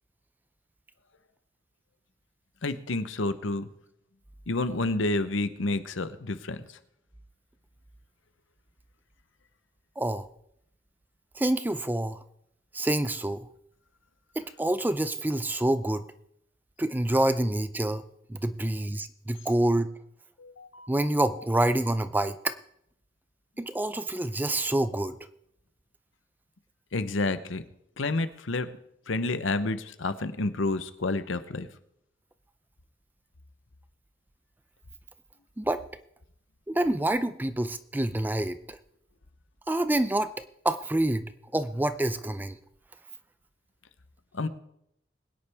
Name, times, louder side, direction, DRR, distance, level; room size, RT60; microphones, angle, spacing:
voice 1, 2.6-3.7 4.5-6.6 20.4-20.9 26.9-27.6 28.0-28.7 29.1-31.7 44.3-44.5, left 2 dB, 80° left, 12 dB, 0.9 m, -29 dB
voice 2, 10.0-10.3 11.4-12.2 12.7-13.5 14.4-16.1 16.8-18.0 18.3-19.9 20.9-22.6 23.6-25.2 35.6-35.8 36.7-38.8 39.7-40.3 40.6-41.3 41.5-42.6, right 1 dB, 10° right, 12 dB, 0.4 m, -27 dB
21.5 x 9.9 x 3.5 m, 0.74 s
head